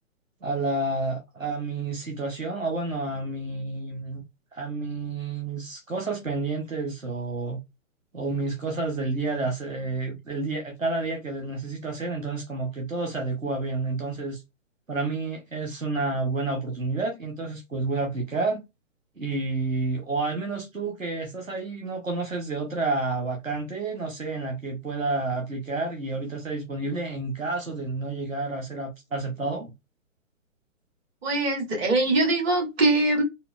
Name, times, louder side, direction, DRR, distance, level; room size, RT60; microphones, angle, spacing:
voice 1, 0.4-4.2 4.5-7.6 8.1-14.4 14.9-18.6 19.2-29.7, right 3 dB, 85° right, 1.0 m, -30 dB
voice 2, 31.2-33.2, right 2 dB, 50° right, 1.6 m, -22 dB
3.7 x 2.2 x 2.4 m
figure-of-eight pair, 125°, 39 cm